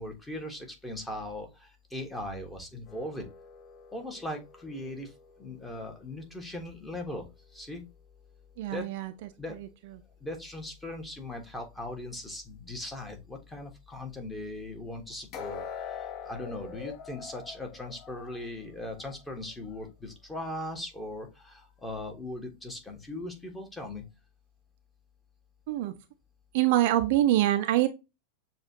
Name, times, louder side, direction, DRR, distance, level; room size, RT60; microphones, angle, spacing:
voice 1, 0.0-3.3 3.9-5.1 5.4-7.8 8.7-8.9 9.4-9.6 10.2-24.0, left 1 dB, 10° left, 1.2 m, -39 dB
sound 1, 2.9-6.0 15.3-19.2 19.6-19.8 20.4-20.5, left 7 dB, 40° left, 1.3 m, -44 dB
voice 2, 8.6-9.1 25.7-26.0 26.5-27.9, right 14 dB, 50° right, 0.4 m, -24 dB
6.7 x 2.4 x 2.7 m
figure-of-eight pair, 90°, 0 cm